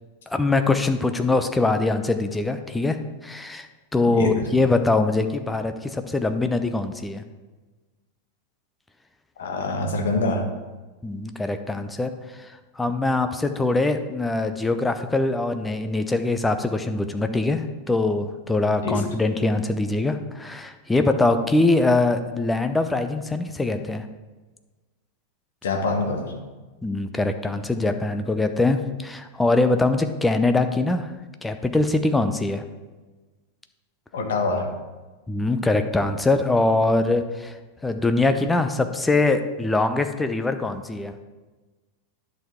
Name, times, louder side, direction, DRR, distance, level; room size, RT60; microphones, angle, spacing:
voice 1, 0.3-7.2 11.0-24.1 26.8-31.1 31.4-32.6 35.3-37.6 37.8-41.2, left 2 dB, 10° left, 8 dB, 0.7 m, -23 dB
voice 2, 9.4-10.4 18.8-19.0 25.6-26.3 34.1-34.7, left 3 dB, 60° left, 3 dB, 1.6 m, -25 dB
10.5 x 6.6 x 3.6 m, 1.2 s
figure-of-eight pair, 90°, 0 cm